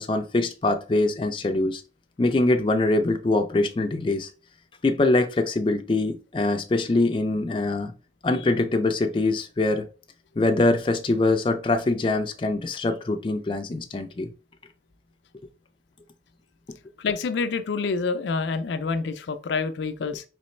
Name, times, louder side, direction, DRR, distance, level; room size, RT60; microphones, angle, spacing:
voice 1, 0.0-1.8 2.2-4.3 4.8-7.9 8.2-9.9 10.4-14.3, left 2 dB, 30° left, 0.4 m, -23 dB
voice 2, 17.0-20.2, left 4 dB, 90° left, 0.4 m, -27 dB
4.2 x 3.1 x 3.1 m
head